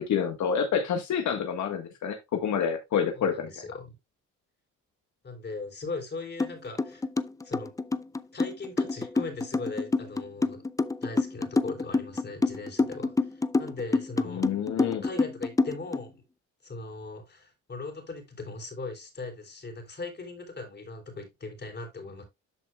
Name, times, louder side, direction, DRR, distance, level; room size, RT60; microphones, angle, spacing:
voice 1, 0.0-3.5 14.3-15.0, left 7 dB, 70° left, 1.4 m, -28 dB
voice 2, 3.1-3.9 5.2-7.1 7.4-7.7 8.3-10.6 11.0-14.5 15.0-16.2 16.6-22.2, left 3 dB, 35° left, 3.5 m, -39 dB
sound 1, 6.4-6.5 6.8-16.0, left 3 dB, 10° left, 0.4 m, -27 dB
13.0 x 4.5 x 2.2 m
cardioid pair, 90°, 30 cm